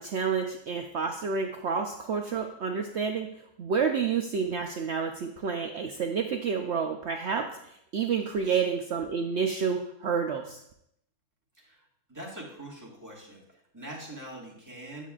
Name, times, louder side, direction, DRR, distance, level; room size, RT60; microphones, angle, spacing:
voice 1, 0.0-3.3 3.6-10.6, right 6 dB, 65° right, 3 dB, 0.7 m, -29 dB
voice 2, 11.6-15.1, right 1 dB, 10° right, -4 dB, 1.6 m, -44 dB
10.0 x 7.4 x 2.4 m, 0.74 s
omnidirectional pair, 1.6 m